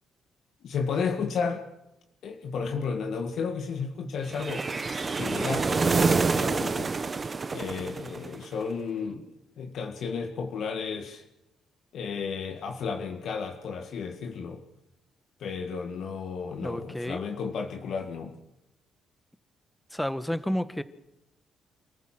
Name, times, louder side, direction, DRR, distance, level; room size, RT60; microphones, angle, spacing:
voice 1, 0.6-1.6 2.2-6.9 7.5-11.2 11.9-14.6 15.4-18.4, left 5 dB, 70° left, 3 dB, 1.9 m, -33 dB
sound 1, 4.3-8.5, right 4 dB, 35° right, 1.1 m, -27 dB
voice 2, 16.6-17.2 19.9-20.8, equal, 5° left, 12 dB, 1.2 m, -30 dB
27.5 x 14.5 x 7.8 m, 0.93 s
cardioid pair, 90°, 0 cm